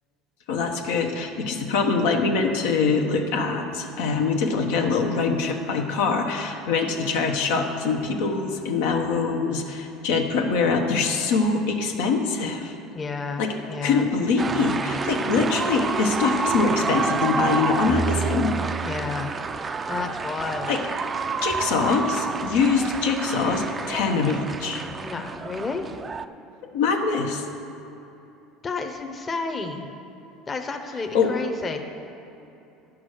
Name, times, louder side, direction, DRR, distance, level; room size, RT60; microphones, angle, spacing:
voice 1, 0.5-12.8 13.4-13.5 13.8-18.5 20.7-20.8 21.4-24.8 26.6-27.4 31.1-31.3, left 4 dB, 85° left, 2 dB, 0.9 m, -24 dB
voice 2, 12.9-14.1 18.9-19.3 19.9-20.8 25.0-25.9 28.6-29.9 30.5-31.8, left 4 dB, 25° left, 4 dB, 0.8 m, -31 dB
sound 1, 14.4-26.2, right 4 dB, 25° right, 0.4 m, -28 dB
9.5 x 6.1 x 6.4 m, 2.9 s
supercardioid pair, 105°, 0 cm